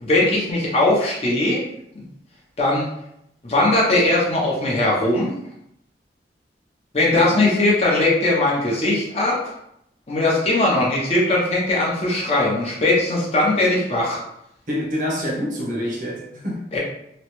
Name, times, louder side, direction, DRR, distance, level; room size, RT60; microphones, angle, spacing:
voice 1, 0.0-1.6 2.6-2.9 3.4-5.3 6.9-9.4 10.1-14.2 16.7-16.8, left 2 dB, 35° left, -4 dB, 0.7 m, -19 dB
voice 2, 14.7-16.8, equal, 50° right, -2 dB, 0.8 m, -27 dB
3.0 x 2.1 x 3.0 m, 0.77 s
head